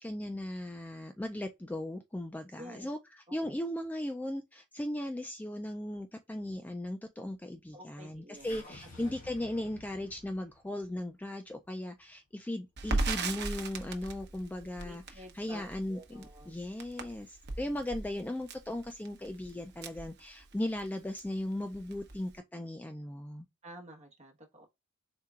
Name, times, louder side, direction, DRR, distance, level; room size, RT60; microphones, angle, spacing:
voice 1, 0.0-3.0 3.3-23.5, left 1 dB, 10° left, 0.3 m, -37 dB
voice 2, 2.5-2.9 3.3-3.5 7.7-9.0 14.8-16.6 17.7-17.8 23.6-24.7, equal, 35° right, 1.2 m, -51 dB
sound 1, 8.3-12.7, left 2 dB, 40° left, 1.4 m, -53 dB
Crackle, 12.8-20.8 21.2-21.3 21.6-22.3, right 3 dB, 55° right, 0.8 m, -37 dB
4.4 x 3.7 x 2.4 m
head